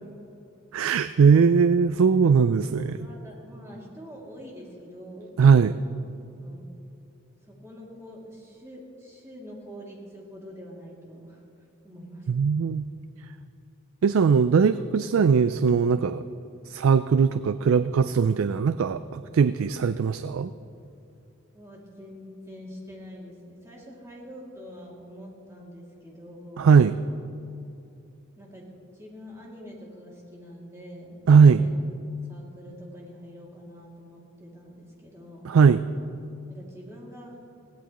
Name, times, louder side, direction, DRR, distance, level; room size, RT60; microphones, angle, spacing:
voice 1, 0.7-3.0 5.4-5.8 12.3-12.9 14.0-16.3 16.7-20.5 26.6-27.0 31.3-31.6 35.4-35.8, right 6 dB, 70° right, 12 dB, 0.3 m, -20 dB
voice 2, 3.0-5.3 6.4-6.7 7.4-11.4 11.8-12.3 21.5-26.7 28.4-31.8 32.3-35.6 36.5-37.4, equal, 15° right, -4 dB, 2.5 m, -45 dB
21.0 x 16.5 x 3.0 m, 2.8 s
head